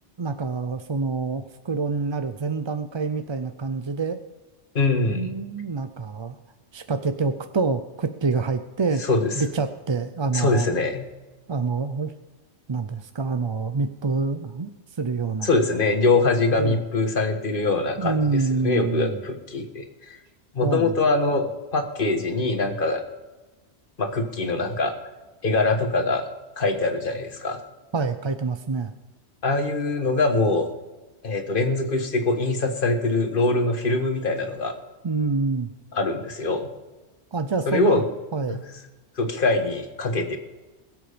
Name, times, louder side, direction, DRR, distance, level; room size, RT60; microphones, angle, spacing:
voice 1, 0.2-4.2 5.0-6.4 6.7-9.0 9.4-10.7 11.5-12.1 12.7-15.5 16.6-16.8 18.0-19.2 20.6-21.0 27.9-28.9 35.0-35.7 37.3-38.0 38.3-38.6, right 4 dB, 35° right, 9 dB, 0.4 m, -26 dB
voice 2, 4.7-5.3 9.1-9.3 10.3-11.0 15.4-20.2 20.5-23.0 24.0-24.9 25.4-26.3 26.6-27.6 29.4-30.7 31.2-34.7 35.9-36.7 37.7-38.0 38.5-38.6 39.2-40.4, left 3 dB, 50° left, 5 dB, 1.6 m, -23 dB
21.0 x 7.8 x 5.1 m, 1.2 s
omnidirectional pair, 1.2 m